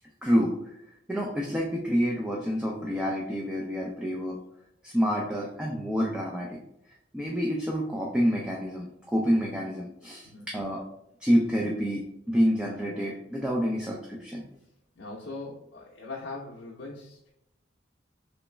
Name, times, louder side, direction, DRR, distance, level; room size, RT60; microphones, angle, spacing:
voice 1, 0.2-0.5 1.1-4.4 4.8-6.6 7.1-10.8 11.2-14.4, equal, 5° right, -2 dB, 0.3 m, -28 dB
voice 2, 15.0-17.3, left 3 dB, 80° left, -2 dB, 0.6 m, -40 dB
3.2 x 3.1 x 3.1 m, 0.79 s
head